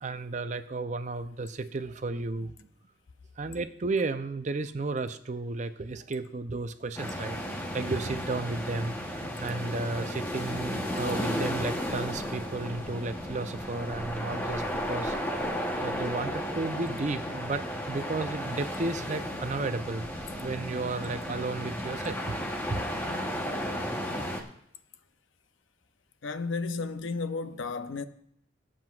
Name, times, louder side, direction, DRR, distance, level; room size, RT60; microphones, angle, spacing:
voice 1, 0.0-2.7 3.4-9.1 9.4-14.6 14.9-15.2 15.8-20.0 20.4-22.4 22.7-22.8 23.5-23.6, right 3 dB, 35° right, 0.5 m, -33 dB
sound 1, 7.0-24.4, equal, 10° left, 0.9 m, -34 dB
voice 2, 26.2-28.0, left 4 dB, 75° left, 0.6 m, -33 dB
22.0 x 7.6 x 2.4 m
head